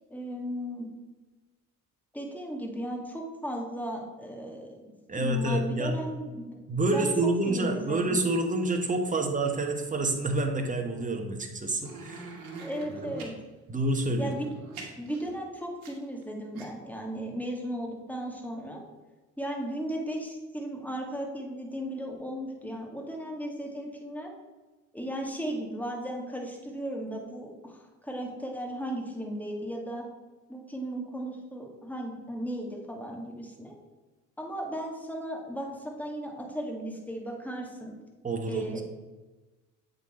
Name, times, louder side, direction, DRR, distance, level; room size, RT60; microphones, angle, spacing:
voice 1, 0.1-0.9 2.1-6.6 6.9-7.1 7.5-8.2 9.1-9.2 12.6-13.3 14.2-14.5 15.0-18.8 19.4-24.3 24.9-30.0 30.5-33.7 34.4-38.0 38.5-38.8, equal, 5° left, 0 dB, 1.9 m, -36 dB
voice 2, 5.1-5.9 6.7-12.4 12.9-13.1 13.7-14.3 38.2-38.8, right 2 dB, 20° right, 4 dB, 1.2 m, -28 dB
sound 1, 11.8-13.3 14.2-16.2 16.5-16.6, right 3 dB, 80° right, 1.4 m, -43 dB
7.9 x 4.0 x 4.3 m, 1.2 s
supercardioid pair, 65°, 35 cm